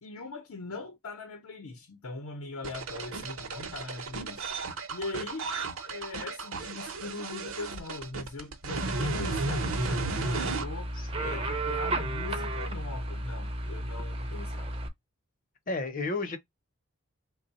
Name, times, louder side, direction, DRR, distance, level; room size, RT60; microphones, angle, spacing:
voice 1, 0.0-4.5 4.9-5.5 5.8-10.9 11.2-14.7, left 3 dB, 70° left, 0.7 m, -41 dB
sound 1, 2.6-10.6, right 3 dB, 65° right, 0.7 m, -34 dB
sound 2, 8.7-14.9, right 1 dB, 25° right, 0.5 m, -34 dB
voice 2, 11.0-11.5 15.7-16.4, left 3 dB, 35° left, 0.7 m, -33 dB
3.3 x 2.2 x 4.0 m
head